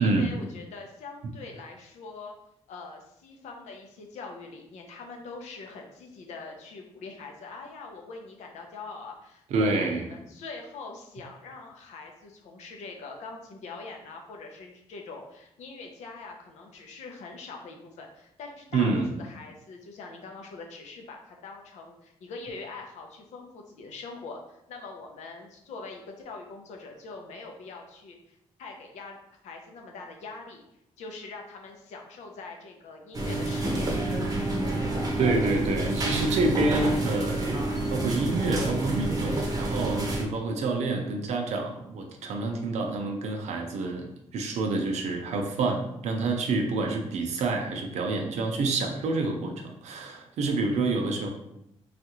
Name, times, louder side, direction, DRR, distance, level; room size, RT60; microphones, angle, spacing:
voice 1, 0.0-2.3 2.7-29.2 29.4-30.6 31.0-33.9, left 3 dB, 90° left, 2 dB, 0.6 m, -43 dB
voice 2, 9.5-10.1 18.7-19.1 35.2-37.6 37.9-44.1 44.3-51.3, right 3 dB, 80° right, 3 dB, 0.6 m, -28 dB
sound 1, 33.1-40.2, right 2 dB, 30° right, 0.7 m, -28 dB
3.3 x 2.4 x 2.9 m, 0.80 s
cardioid pair, 105°, 12 cm